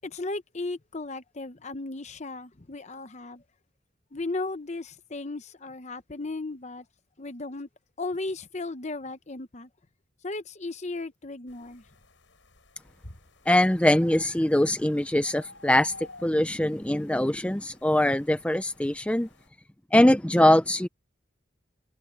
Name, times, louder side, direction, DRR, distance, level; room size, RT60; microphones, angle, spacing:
voice 1, 0.0-3.4 4.1-6.8 7.2-7.7 8.0-9.7 10.2-11.8, left 2 dB, 35° left, 0.9 m, -35 dB
sound 1, 11.5-19.5, left 2 dB, 80° left, 5.4 m, -52 dB
voice 2, 13.5-15.9 16.2-19.3 19.9-20.9, left 1 dB, 5° left, 0.5 m, -22 dB
head